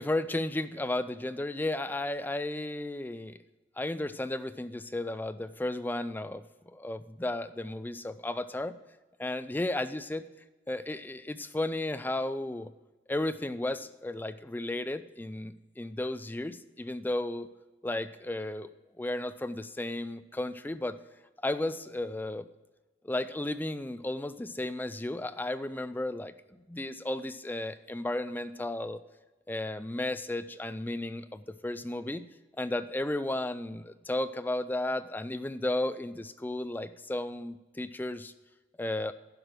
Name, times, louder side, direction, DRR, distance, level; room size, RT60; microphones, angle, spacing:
voice 1, 0.0-3.4 3.8-8.7 9.2-10.3 10.7-12.7 13.1-17.5 17.8-18.7 19.0-21.0 21.4-22.4 23.0-26.3 26.7-29.0 29.5-32.2 32.6-38.3 38.8-39.1, left 1 dB, 10° left, 12 dB, 0.3 m, -34 dB
10.5 x 5.0 x 7.5 m, 1.2 s
head